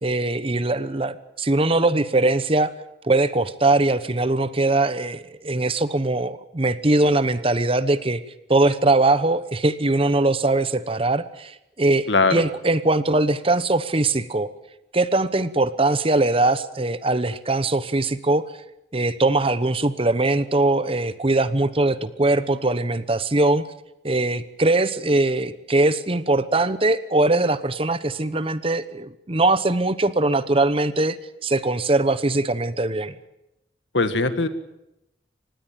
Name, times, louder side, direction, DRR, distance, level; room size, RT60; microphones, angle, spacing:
voice 1, 0.0-2.7 3.0-8.2 8.5-14.5 14.9-18.5 18.9-23.6 24.0-31.2 31.4-33.1, right 2 dB, 30° right, 14 dB, 1.0 m, -21 dB
voice 2, 12.1-12.4 33.9-34.5, left 3 dB, 85° left, 10 dB, 2.0 m, -20 dB
25.5 x 19.5 x 7.5 m, 0.86 s
head